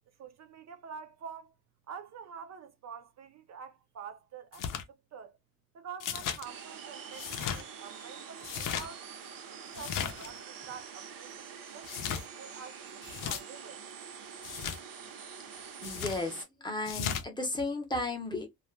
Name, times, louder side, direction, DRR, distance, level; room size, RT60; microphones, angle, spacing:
voice 1, 0.1-1.5 1.9-5.4 5.7-9.0 9.5-11.4 11.7-13.8, right 7 dB, 50° right, 0.5 m, -47 dB
sound 1, 4.5-4.8 6.0-6.4 7.1-7.6 8.4-8.9 9.7-10.3 11.8-12.2 13.0-13.4 14.4-14.8 15.8-16.2 16.8-17.2, left 8 dB, 65° left, 0.5 m, -35 dB
sound 2, 6.4-16.4, right 7 dB, 70° right, 0.8 m, -46 dB
voice 2, 15.5-18.5, left 2 dB, 15° left, 0.6 m, -35 dB
2.4 x 2.1 x 3.0 m
cardioid pair, 155°, 35 cm